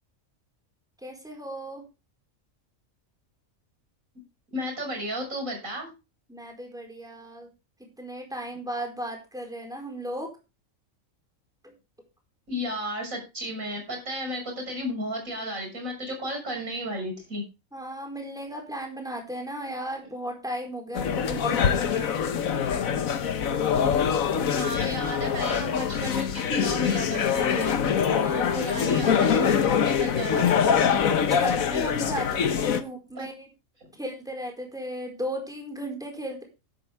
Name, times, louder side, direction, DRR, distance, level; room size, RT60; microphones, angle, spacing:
voice 1, 1.0-1.8 6.3-7.5 7.8-10.3 11.6-11.7 17.7-22.2 28.0-28.7 31.3-33.5 34.0-36.4, equal, 5° right, 2 dB, 4.6 m, -36 dB
voice 2, 4.5-5.9 12.5-17.4 24.5-27.8 28.3-30.5 33.2-33.3 33.8-33.9, equal, 80° right, 3 dB, 6.5 m, -33 dB
sound 1, 20.9-32.8, left 7 dB, 85° left, 1.5 m, -24 dB
12.5 x 11.0 x 3.5 m, 0.28 s
omnidirectional pair, 1.4 m